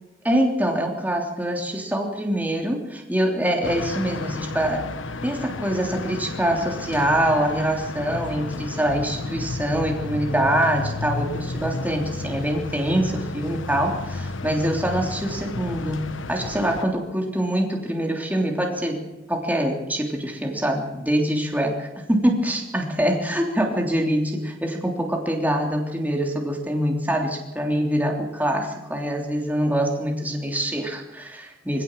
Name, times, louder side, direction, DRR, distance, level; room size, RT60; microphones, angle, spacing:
voice 1, 0.2-4.9 5.2-19.0 19.3-31.8, right 1 dB, 10° right, 1 dB, 3.2 m, -24 dB
sound 1, 3.6-16.8, left 3 dB, 85° left, 1.2 m, -32 dB
24.0 x 16.5 x 7.5 m, 1.0 s
head